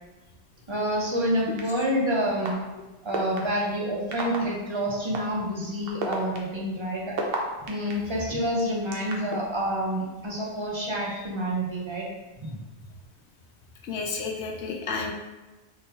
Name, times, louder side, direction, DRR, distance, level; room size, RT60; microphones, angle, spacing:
voice 1, 0.7-2.6 3.0-7.2 7.7-12.1 12.5-12.6, equal, 30° right, -3 dB, 0.7 m, -28 dB
sound 1, 1.6-1.7 2.4-2.5 3.1-3.4 4.1-4.4 5.1-5.2 5.9-7.9 8.6-9.4, right 5 dB, 65° right, 0.9 m, -30 dB
voice 2, 13.9-15.1, left 4 dB, 85° left, 2 dB, 0.9 m, -31 dB
3.8 x 3.7 x 2.7 m, 1.1 s
omnidirectional pair, 1.1 m